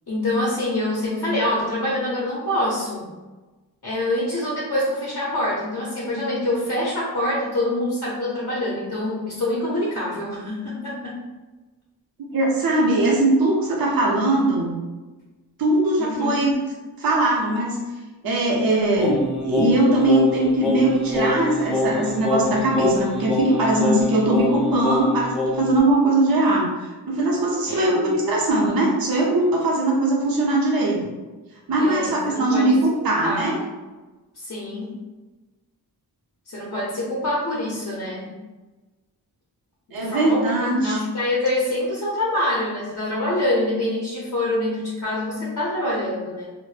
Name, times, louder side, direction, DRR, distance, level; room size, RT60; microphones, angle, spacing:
voice 1, 0.1-3.1 3.8-11.2 16.0-16.4 27.7-28.1 31.8-32.7 33.2-33.6 34.4-34.9 36.5-38.3 39.9-46.5, left 1 dB, 40° left, -6 dB, 0.6 m, -25 dB
voice 2, 12.3-14.7 15.6-16.6 17.0-17.8 18.2-31.0 31.7-33.6 39.9-41.0, right 2 dB, 60° right, -3 dB, 0.7 m, -20 dB
Singing, 19.0-25.8, left 2 dB, ahead, 0.4 m, -25 dB
2.0 x 2.0 x 3.1 m, 1.2 s
wide cardioid pair, 100°, 40 cm